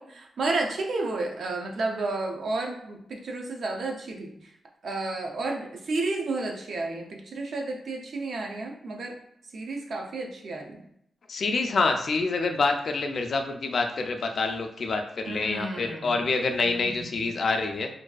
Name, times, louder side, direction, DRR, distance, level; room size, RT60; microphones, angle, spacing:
voice 1, 0.0-4.3 4.8-9.2 9.5-10.8 15.2-16.2 16.6-17.3, right 2 dB, 65° right, 2 dB, 0.4 m, -32 dB
voice 2, 11.3-17.9, left 3 dB, 55° left, 5 dB, 0.3 m, -27 dB
2.5 x 2.3 x 2.3 m, 0.74 s
cardioid pair, 105°, 0 cm